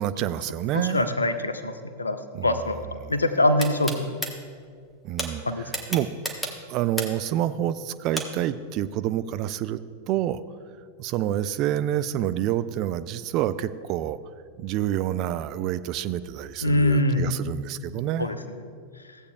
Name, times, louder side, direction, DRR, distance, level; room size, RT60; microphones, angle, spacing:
voice 1, 0.0-1.0 2.3-2.6 3.0-3.1 5.0-6.1 6.7-9.8 10.1-10.4 11.0-14.2 14.6-18.3, right 12 dB, 40° right, 12 dB, 0.3 m, -28 dB
voice 2, 0.7-2.2 2.4-2.8 3.1-4.1 5.5-5.7 16.6-17.3 18.2-18.3, left 1 dB, 80° left, 10 dB, 0.6 m, -23 dB
sound 1, 3.6-4.3 5.2-5.3 5.7-7.3 8.2-8.3, equal, 5° left, 1.1 m, -30 dB
15.5 x 8.2 x 2.3 m, 2.1 s
figure-of-eight pair, 90°, 0 cm